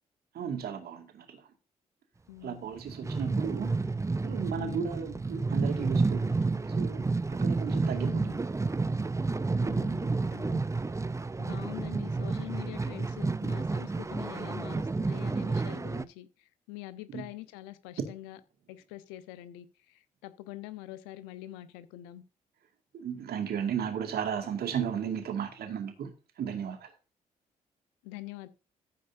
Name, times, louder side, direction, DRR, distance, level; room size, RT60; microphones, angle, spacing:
voice 1, 0.3-1.5 2.4-3.7 4.2-8.2 17.1-17.2 22.9-26.9, right 7 dB, 60° right, 2.2 m, -35 dB
voice 2, 2.3-2.7 4.6-4.9 8.0-8.4 9.6-10.6 11.4-18.4 18.7-22.2 28.0-28.5, left 15 dB, 75° left, 0.9 m, -45 dB
sound 1, 2.8-16.0, right 3 dB, 15° right, 0.6 m, -30 dB
14.5 x 7.7 x 2.7 m
figure-of-eight pair, 40°, 18 cm